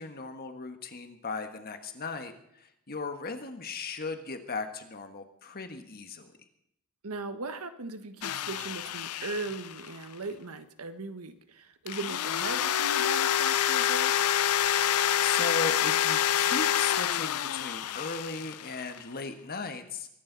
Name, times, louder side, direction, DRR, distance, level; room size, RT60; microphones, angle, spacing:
voice 1, 0.0-6.3 15.2-20.1, left 3 dB, 45° left, 7 dB, 1.4 m, -37 dB
voice 2, 7.0-14.3, right 3 dB, 75° right, 9 dB, 1.4 m, -38 dB
sound 1, 8.2-10.0 11.9-19.0, left 10 dB, 80° left, 0.5 m, -27 dB
23.0 x 12.0 x 4.0 m, 0.75 s
head